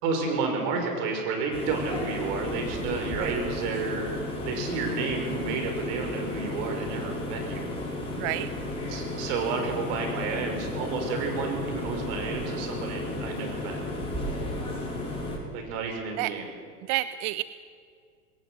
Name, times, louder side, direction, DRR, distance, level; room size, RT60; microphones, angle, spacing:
voice 1, 0.0-4.1 4.5-7.7 8.9-13.8 15.5-16.5, right 4 dB, 50° right, 3 dB, 6.1 m, -31 dB
sound 1, 1.5-15.4, left 2 dB, 10° left, 6.2 m, -33 dB
voice 2, 8.2-8.5 16.2-16.3 16.9-17.4, right 17 dB, 35° right, 14 dB, 0.5 m, -29 dB
20.0 x 19.0 x 7.9 m, 2.2 s
hypercardioid pair, 110°, 47 cm